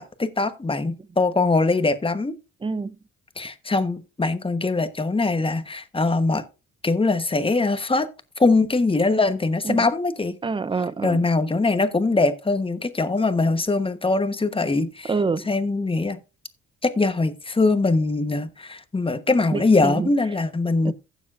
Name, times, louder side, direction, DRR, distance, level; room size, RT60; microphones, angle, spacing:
voice 1, 0.0-2.4 3.4-6.4 6.8-8.1 8.4-10.4 11.0-15.1 15.5-16.2 16.8-20.9, left 3 dB, 20° left, 1.1 m, -22 dB
voice 2, 2.6-3.0 9.6-9.9 10.4-11.2 15.1-15.5 19.5-20.1 20.8-20.9, right 4 dB, 15° right, 0.5 m, -26 dB
15.5 x 7.1 x 2.5 m
cardioid pair, 90°, 30 cm